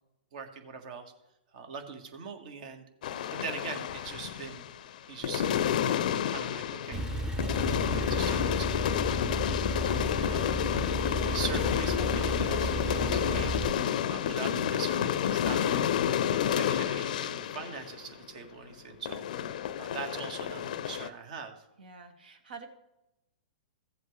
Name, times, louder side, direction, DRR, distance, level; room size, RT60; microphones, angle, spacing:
voice 1, 0.3-1.1 1.5-2.8 3.3-4.6 5.1-7.0 7.6-8.9 9.7-10.6 11.2-13.6 14.1-16.0 16.5-19.2 19.5-21.6, right 6 dB, 60° right, 6 dB, 1.6 m, -42 dB
sound 1, 3.0-4.9 5.2-18.7 19.1-21.1, left 9 dB, 65° left, 0.5 m, -30 dB
Male speech man speaking / Car / Idling, 6.9-13.7, right 1 dB, 10° right, 0.7 m, -34 dB
voice 2, 9.8-10.2 21.8-22.7, right 4 dB, 80° right, 6 dB, 1.7 m, -48 dB
15.5 x 7.8 x 3.2 m, 0.91 s
hypercardioid pair, 125°, 5 cm